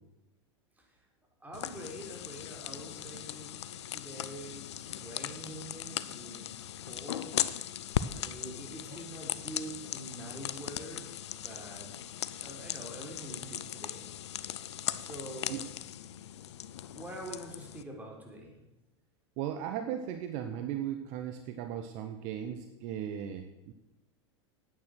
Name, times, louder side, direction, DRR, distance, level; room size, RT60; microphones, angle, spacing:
voice 1, 1.4-7.3 8.1-11.9 12.4-14.0 15.0-15.6 16.9-18.5, right 1 dB, 10° right, 0 dB, 3.7 m, -45 dB
sound 1, 1.5-17.8, left 11 dB, 75° left, 0.6 m, -38 dB
voice 2, 19.4-23.7, right 10 dB, 55° right, 7 dB, 0.9 m, -37 dB
9.3 x 9.0 x 6.2 m, 0.98 s
hypercardioid pair, 95°, 14 cm